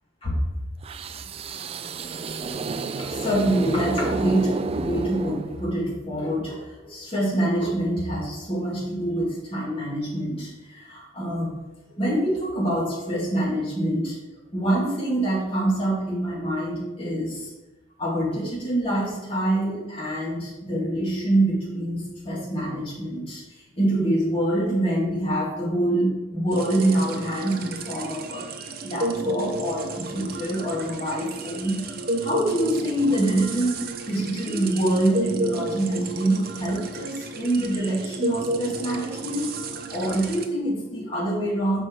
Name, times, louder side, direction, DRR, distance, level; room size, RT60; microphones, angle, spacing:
sound 1, 0.8-5.9, right 4 dB, 30° right, 0.3 m, -31 dB
voice 1, 3.0-11.5 12.0-14.2 14.5-17.5 18.0-23.4 23.8-28.4 28.8-39.5 39.9-41.8, right 1 dB, 30° left, -7 dB, 2.5 m, -25 dB
sound 2, 26.5-40.5, right 2 dB, 55° right, 0.8 m, -31 dB
6.3 x 4.5 x 6.1 m, 1.1 s
head